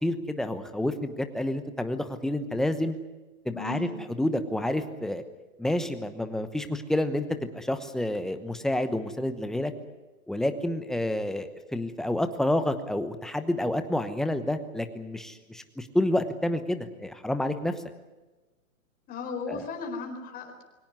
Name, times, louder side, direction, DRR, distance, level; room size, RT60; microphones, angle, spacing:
voice 1, 0.0-2.9 3.4-3.9 4.2-5.2 5.6-9.7 10.3-17.7 19.5-19.6, left 1 dB, ahead, 9 dB, 1.0 m, -29 dB
voice 2, 3.5-3.9 19.1-20.6, left 4 dB, 20° left, 3 dB, 4.3 m, -36 dB
23.5 x 17.5 x 9.5 m, 1.1 s
hypercardioid pair, 140°, 43 cm